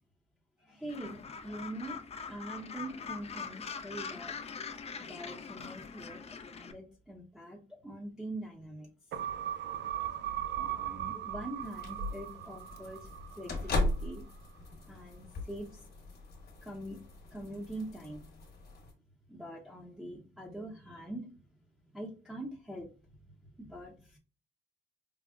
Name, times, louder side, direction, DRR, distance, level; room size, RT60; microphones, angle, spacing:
voice 1, 0.6-2.0 2.3-4.4 5.0-6.2 6.5-8.9 10.6-13.0 13.4-14.2 14.9-15.7 16.6-17.0 17.3-18.2 19.3-21.2 21.9-22.9 23.6-24.2, right 1 dB, 5° right, -4 dB, 0.7 m, -43 dB
Gull seagull, 0.9-6.7, left 5 dB, 30° left, 0.4 m, -43 dB
sound 1, 9.1-13.8 14.2-14.3, right 9 dB, 65° right, 0.4 m, -38 dB
sound 2, 11.6-18.9, left 1 dB, 55° left, 1.2 m, -38 dB
4.8 x 2.0 x 2.3 m, 0.37 s
cardioid pair, 90°, 20 cm